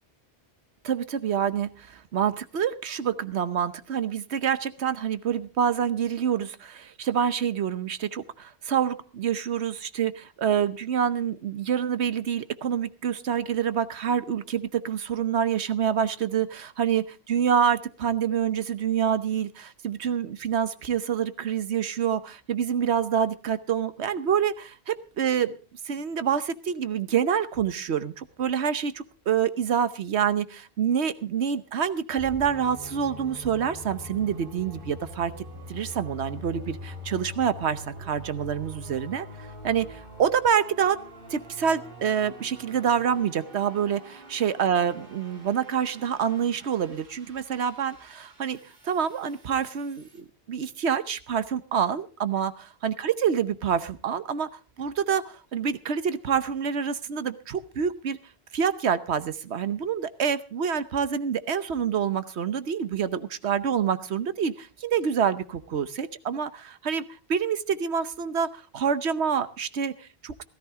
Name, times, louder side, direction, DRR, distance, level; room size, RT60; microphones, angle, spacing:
voice 1, 0.8-17.0 17.3-25.5 25.9-35.3 35.7-41.0 41.3-48.6 48.8-58.2 58.5-70.4, right 8 dB, 85° right, 13 dB, 1.2 m, -27 dB
sound 1, 32.2-50.2, left 1 dB, 55° right, 2.5 m, -44 dB
16.5 x 14.0 x 3.6 m, 0.36 s
omnidirectional pair, 1.1 m